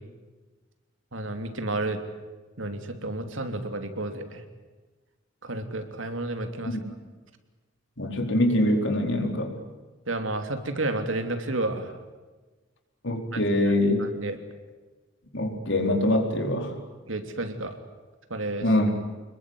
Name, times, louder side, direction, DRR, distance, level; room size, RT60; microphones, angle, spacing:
voice 1, 1.1-2.0 2.6-4.4 5.4-6.8 10.1-11.9 13.3-13.4 14.2-14.4 17.1-17.7 18.3-18.7, right 2 dB, 70° right, 7 dB, 3.2 m, -31 dB
voice 2, 8.0-9.5 13.0-14.0 15.3-16.7 18.6-19.0, left 1 dB, 60° left, 4 dB, 4.5 m, -24 dB
27.0 x 21.5 x 9.6 m, 1.3 s
head